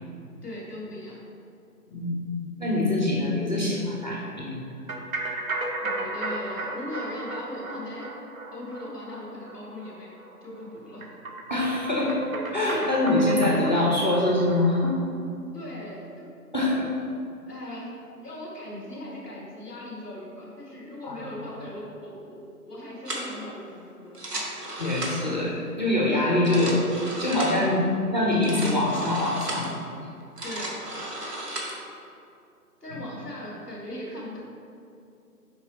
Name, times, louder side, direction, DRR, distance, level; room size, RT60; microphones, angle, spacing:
voice 1, 0.4-1.2 5.8-8.1 8.5-10.1 10.4-11.1 15.5-16.3 17.5-22.4 22.6-24.2 27.5-27.9 30.4-30.8 32.8-34.4, left 1 dB, 10° right, -12 dB, 0.6 m, -39 dB
voice 2, 1.9-2.2 2.6-4.7 11.5-12.2 12.5-15.0 16.5-16.9 21.0-21.2 24.8-26.8 27.2-27.8 28.1-29.8, left 1 dB, 30° left, -3 dB, 0.5 m, -24 dB
sound 1, 4.9-14.9, right 2 dB, 60° right, 0.9 m, -35 dB
sound 2, 23.1-23.4 24.1-25.4 26.3-27.7 28.3-29.7 30.2-31.8, right 1 dB, 80° right, 1.4 m, -35 dB
6.8 x 4.7 x 3.2 m, 2.6 s
figure-of-eight pair, 140°, 47 cm